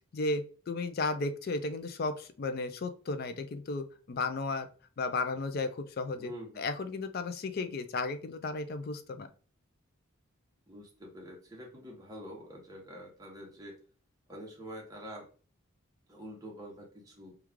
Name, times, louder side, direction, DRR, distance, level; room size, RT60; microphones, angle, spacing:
voice 1, 0.1-4.7 5.0-6.3 6.6-9.3, left 3 dB, 45° left, 10 dB, 0.3 m, -34 dB
voice 2, 6.1-6.6 10.7-13.8 14.3-15.3 16.1-17.4, equal, 15° right, -2 dB, 0.9 m, -46 dB
3.1 x 2.3 x 3.5 m, 0.39 s
head